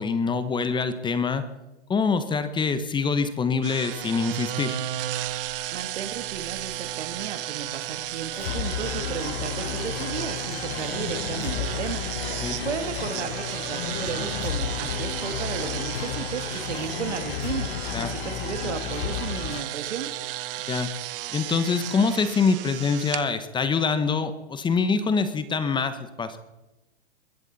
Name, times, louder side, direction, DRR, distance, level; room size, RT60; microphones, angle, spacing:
voice 1, 0.0-1.4 1.9-4.8 12.4-12.6 17.9-18.1 20.7-20.9 21.3-26.4, left 5 dB, 15° left, 11 dB, 1.1 m, -25 dB
sound 1, 3.6-23.2, right 14 dB, 50° right, 1.4 m, -34 dB
voice 2, 5.7-20.1, right 8 dB, 80° right, 9 dB, 2.1 m, -34 dB
sound 2, 8.3-19.6, left 10 dB, 60° left, 1.1 m, -32 dB
22.0 x 15.0 x 4.2 m, 1.0 s
hypercardioid pair, 130°, 34 cm